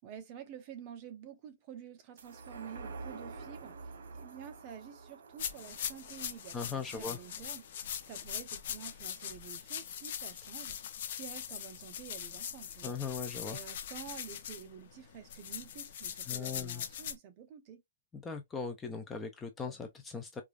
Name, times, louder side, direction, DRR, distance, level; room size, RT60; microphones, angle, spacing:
voice 1, 0.0-7.7 8.0-10.8 11.1-13.0 13.5-17.8, right 8 dB, 25° right, 0.7 m, -49 dB
sound 1, 2.2-9.0 9.4-9.5, right 4 dB, 70° right, 0.9 m, -49 dB
sound 2, 5.4-17.1, left 9 dB, 45° left, 0.6 m, -41 dB
voice 2, 6.5-7.2 12.8-13.6 16.3-16.8 18.2-20.4, left 5 dB, 10° left, 0.4 m, -39 dB
4.8 x 2.3 x 2.4 m
hypercardioid pair, 170°, 0 cm